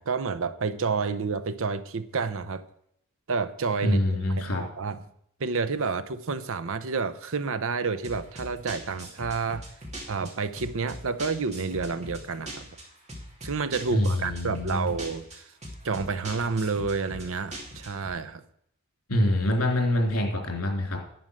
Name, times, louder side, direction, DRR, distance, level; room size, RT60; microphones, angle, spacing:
voice 1, 0.0-2.6 3.3-5.0 5.4-9.6 10.1-12.6 13.4-15.5 15.8-18.4, right 4 dB, 65° right, 13 dB, 0.7 m, -29 dB
voice 2, 3.8-4.6 13.9-14.9 19.1-21.0, left 1 dB, 70° left, 1 dB, 3.3 m, -25 dB
sound 1, 8.0-18.1, equal, 30° right, 2.8 m, -41 dB
11.0 x 8.8 x 6.5 m, 0.72 s
head